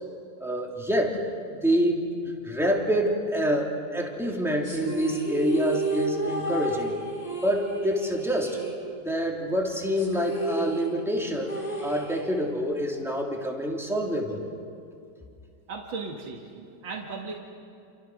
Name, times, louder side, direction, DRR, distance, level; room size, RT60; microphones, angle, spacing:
voice 1, 0.4-1.2 1.6-2.0 2.4-6.9 7.4-8.6 9.0-14.4, equal, ahead, -1 dB, 3.2 m, -27 dB
sound 1, 4.6-9.3 9.6-9.7 10.0-12.6, right 1 dB, 20° left, 6.3 m, -32 dB
voice 2, 15.7-17.4, right 4 dB, 85° right, 0 dB, 2.7 m, -36 dB
29.0 x 29.0 x 6.4 m, 2.4 s
omnidirectional pair, 2.0 m